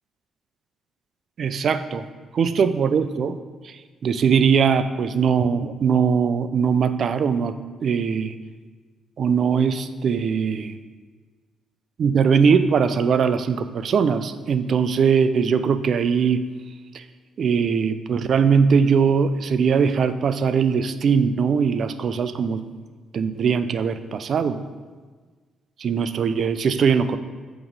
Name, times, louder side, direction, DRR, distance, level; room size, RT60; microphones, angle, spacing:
voice 1, 1.4-2.1 2.3-3.4 3.6-7.6 7.8-8.3 9.2-10.8 12.0-16.4 16.9-17.0 17.4-22.6 23.1-24.6 25.8-27.2, right 6 dB, 55° right, 11 dB, 0.4 m, -21 dB
7.2 x 3.0 x 5.2 m, 1.4 s
cardioid pair, 90°, 0 cm